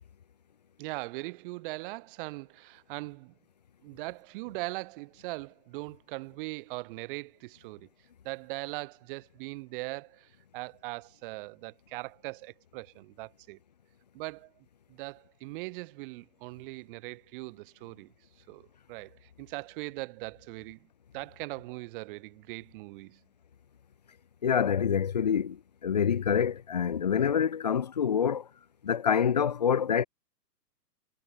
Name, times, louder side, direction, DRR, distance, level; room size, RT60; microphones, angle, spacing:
voice 1, 0.8-3.3 3.8-7.9 8.2-13.6 14.1-14.5 14.9-18.1 18.5-20.8 21.1-23.2, right 23 dB, 30° right, 4.3 m, -40 dB
voice 2, 24.4-28.4 28.8-30.0, left 7 dB, 30° left, 0.5 m, -26 dB
hypercardioid pair, 155°, 48 cm